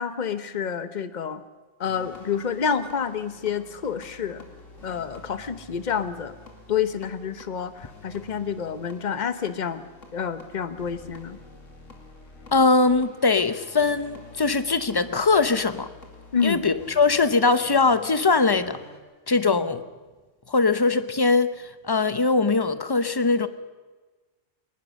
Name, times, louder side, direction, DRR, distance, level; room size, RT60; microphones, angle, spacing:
voice 1, 0.0-1.4 1.8-4.5 4.8-6.3 6.7-9.8 10.1-11.4 16.3-16.6, left 7 dB, 40° left, 12 dB, 1.0 m, -28 dB
sound 1, 1.8-19.0, left 3 dB, 90° left, 3.0 m, -48 dB
voice 2, 12.5-15.9 16.4-18.8 19.3-19.8 20.5-21.5 21.8-23.5, left 4 dB, 25° left, 12 dB, 0.7 m, -21 dB
22.0 x 19.5 x 6.4 m, 1.3 s
omnidirectional pair, 1.3 m